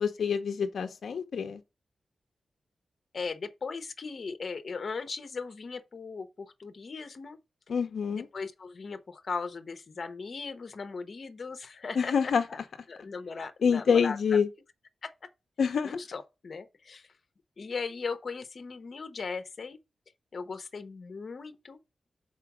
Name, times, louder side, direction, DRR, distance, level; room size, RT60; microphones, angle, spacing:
voice 1, 0.0-1.6 7.7-8.3 12.0-12.4 13.6-14.5 15.6-16.0, left 6 dB, 75° left, 0.6 m, -26 dB
voice 2, 3.1-7.4 8.1-12.6 12.9-14.2 15.0-15.1 15.8-17.1 17.6-19.8 20.3-21.8, left 4 dB, 45° left, 0.8 m, -38 dB
5.8 x 4.4 x 5.9 m
wide cardioid pair, 160°, 0 cm